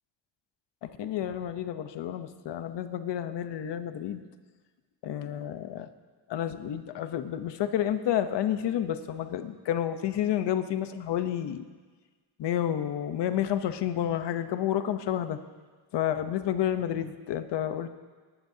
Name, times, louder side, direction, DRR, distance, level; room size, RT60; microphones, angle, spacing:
voice 1, 0.8-4.2 5.0-5.9 6.3-11.6 12.4-15.4 15.9-17.9, left 10 dB, 60° left, 10 dB, 0.9 m, -30 dB
19.0 x 18.5 x 2.8 m, 1.4 s
cardioid pair, 165°, 48 cm